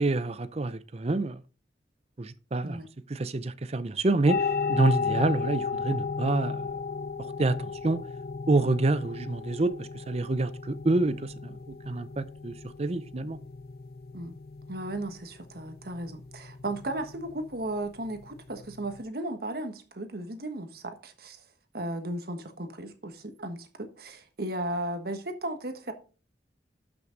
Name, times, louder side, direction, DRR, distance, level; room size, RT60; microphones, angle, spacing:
voice 1, 0.0-1.4 2.2-2.8 3.1-6.7 7.2-8.0 8.5-13.4, right 2 dB, 35° right, 0.5 m, -27 dB
sound 1, 4.3-19.0, left 5 dB, 55° left, 0.6 m, -35 dB
voice 2, 14.7-21.5 21.7-25.9, right 1 dB, 55° right, 1.4 m, -35 dB
12.0 x 6.1 x 3.9 m
head